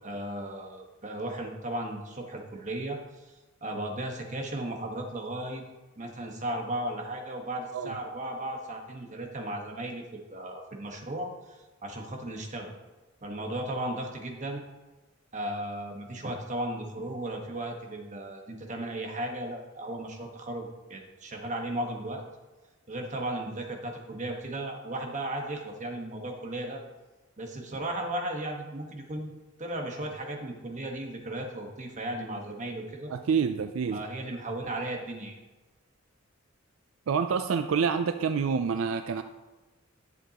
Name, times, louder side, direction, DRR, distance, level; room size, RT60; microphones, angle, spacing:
voice 1, 0.0-3.3 3.6-5.6 6.0-12.7 13.2-14.6 15.3-22.2 22.9-26.8 27.4-33.1 33.9-35.4, right 1 dB, 35° right, 2 dB, 1.3 m, -35 dB
voice 2, 33.1-34.0 37.1-39.2, right 6 dB, 75° right, 8 dB, 0.4 m, -27 dB
11.0 x 7.7 x 2.9 m, 1.2 s
head